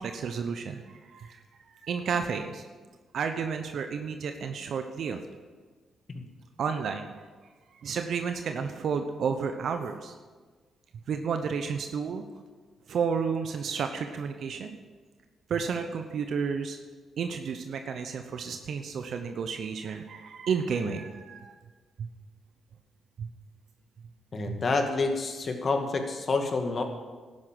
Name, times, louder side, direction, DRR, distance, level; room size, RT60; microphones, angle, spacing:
voice 1, 0.0-1.4 1.7-2.6 3.1-5.2 6.6-7.1 7.7-10.1 11.1-12.2 12.9-14.8 15.5-16.8 17.2-21.5 22.0-22.1 23.2-23.3 24.5-24.6, right 6 dB, 65° right, 6 dB, 1.0 m, -31 dB
voice 2, 24.3-26.8, left 3 dB, 50° left, 4 dB, 2.3 m, -28 dB
12.0 x 11.0 x 7.8 m, 1.4 s
hypercardioid pair, 50°, 0 cm